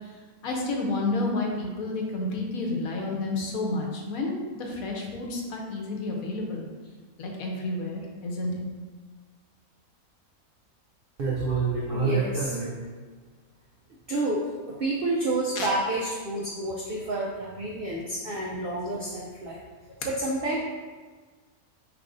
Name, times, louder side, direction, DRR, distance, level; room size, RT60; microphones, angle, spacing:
voice 1, 0.4-6.7 7.2-8.7 15.6-15.7, left 2 dB, 75° left, 0 dB, 1.1 m, -30 dB
voice 2, 11.2-12.9 14.1-19.6 20.0-20.6, right 2 dB, 85° right, -3 dB, 0.5 m, -28 dB
4.7 x 3.3 x 2.5 m, 1.4 s
omnidirectional pair, 1.5 m